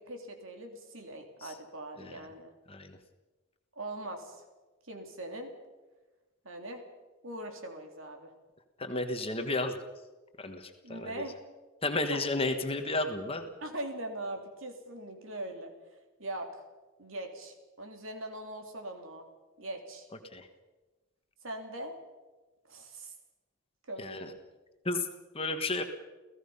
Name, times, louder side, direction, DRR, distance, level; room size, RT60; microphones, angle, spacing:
voice 1, 0.0-2.5 3.7-4.4 4.9-5.5 6.4-6.8 7.2-8.3 10.8-11.4 12.1-12.2 13.6-15.7 16.2-16.5 17.0-19.2 19.6-20.1 21.4-22.0 22.7-23.1 23.9-24.4, right 1 dB, 60° right, 4 dB, 3.2 m, -41 dB
voice 2, 8.8-9.8 10.4-11.1 11.8-13.5 20.3-20.5 24.0-24.3 24.8-25.1 25.3-25.8, left 2 dB, 25° left, 6 dB, 1.5 m, -32 dB
29.5 x 16.0 x 5.6 m, 1.2 s
head